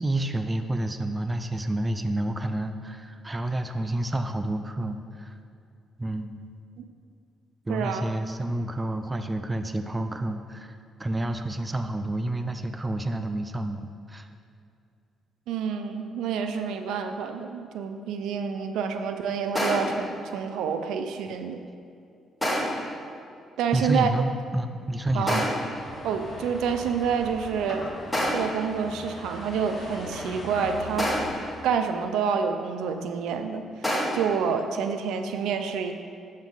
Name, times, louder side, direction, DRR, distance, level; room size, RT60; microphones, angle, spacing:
voice 1, 0.0-5.4 6.0-6.5 7.7-14.3 23.7-25.4, right 1 dB, 20° right, 8 dB, 0.5 m, -29 dB
voice 2, 7.7-8.1 15.5-21.6 23.6-24.1 25.1-25.4 26.0-27.8 28.3-31.1 31.6-33.6 34.1-35.9, right 6 dB, 85° right, 7 dB, 0.5 m, -28 dB
sound 1, 19.5-20.1 22.4-22.9 25.3-25.8 28.1-28.6 31.0-31.5 33.8-34.3, equal, 5° left, 2.0 m, -27 dB
sound 2, 25.7-31.6, left 2 dB, 40° left, 1.9 m, -39 dB
7.4 x 7.1 x 3.9 m, 2.5 s
cardioid pair, 90°, 0 cm